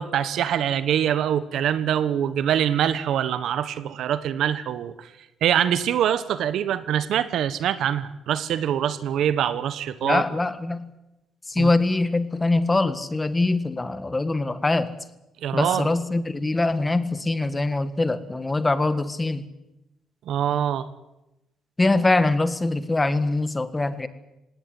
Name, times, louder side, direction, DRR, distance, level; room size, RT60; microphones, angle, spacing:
voice 1, 0.0-5.1 5.4-10.2 11.6-11.7 15.4-15.9 20.3-20.9, right 10 dB, 75° right, 14 dB, 1.2 m, -24 dB
voice 2, 10.0-10.9 11.5-14.9 15.5-19.5 21.8-24.1, left 2 dB, 20° left, 12 dB, 1.7 m, -23 dB
19.0 x 17.5 x 9.6 m, 0.95 s
cardioid pair, 90°, 0 cm